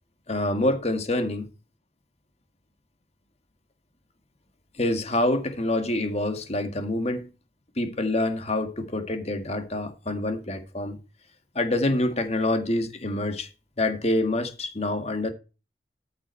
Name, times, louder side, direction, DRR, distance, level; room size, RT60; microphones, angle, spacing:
voice 1, 0.3-1.4 4.8-7.3 7.8-11.0 11.6-13.5 13.8-15.3, left 1 dB, 40° left, 2.0 m, -26 dB
13.5 x 6.2 x 4.6 m
head